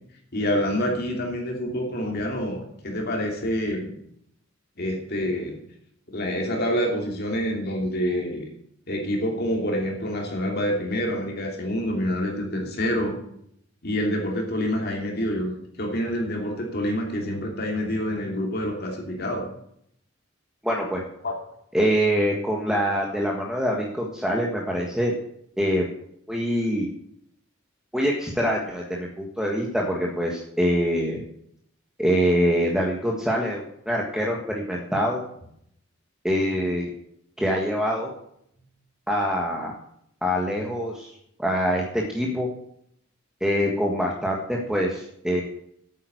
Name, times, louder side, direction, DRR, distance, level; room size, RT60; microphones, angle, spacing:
voice 1, 0.3-3.9 4.8-5.5 6.1-8.4 8.9-13.2 13.8-19.5 21.2-21.3, equal, 55° left, 0 dB, 2.8 m, -27 dB
voice 2, 20.6-21.0 21.7-25.1 25.6-25.9 26.3-26.9 27.9-31.3 32.0-35.2 36.2-36.9 37.4-38.1 39.1-39.7 40.2-41.1 41.4-42.5 43.4-45.4, equal, 5° right, -2 dB, 1.5 m, -24 dB
9.1 x 8.9 x 7.9 m, 0.71 s
head